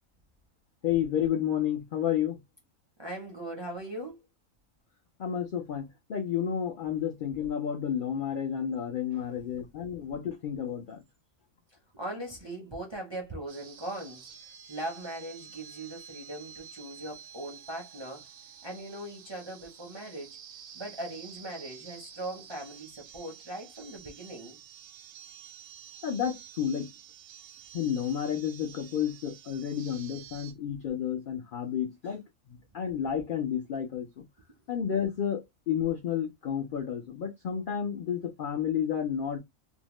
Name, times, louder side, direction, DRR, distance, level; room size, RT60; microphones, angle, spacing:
voice 1, 0.8-2.4 5.2-11.0 26.0-26.9 27.7-32.2 32.7-34.2 34.7-39.4, left 9 dB, 65° left, 0.5 m, -31 dB
voice 2, 3.0-4.3 9.1-9.5 11.7-18.3 18.6-20.4 20.7-24.6, right 1 dB, 30° right, 0.5 m, -40 dB
sound 1, 13.5-30.5, right 8 dB, 85° right, 1.0 m, -50 dB
2.7 x 2.1 x 3.0 m
omnidirectional pair, 1.4 m